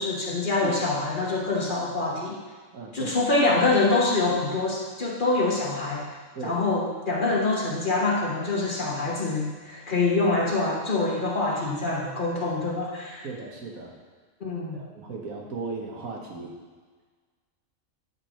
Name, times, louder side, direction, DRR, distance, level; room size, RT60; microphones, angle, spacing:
voice 1, 0.0-2.4 2.9-6.1 6.4-13.3 14.4-14.8, left 3 dB, 40° left, -3 dB, 1.1 m, -25 dB
voice 2, 2.7-3.2 6.3-6.6 13.2-14.0 14.7-16.5, right 4 dB, 75° right, -1 dB, 1.6 m, -36 dB
9.2 x 4.8 x 4.3 m, 1.5 s
omnidirectional pair, 1.5 m